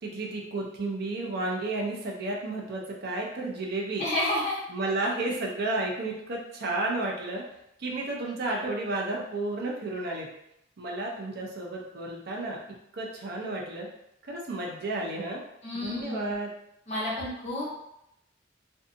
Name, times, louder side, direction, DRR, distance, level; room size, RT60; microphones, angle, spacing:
voice 1, 0.0-4.0 4.7-7.4 7.8-10.3 10.8-12.6 12.9-13.9 14.3-15.4 15.7-16.5, right 2 dB, 55° right, -1 dB, 0.5 m, -32 dB
voice 2, 4.0-4.6 15.6-16.4 16.9-17.7, left 1 dB, 35° left, -7 dB, 1.0 m, -30 dB
2.6 x 2.3 x 2.6 m, 0.80 s
head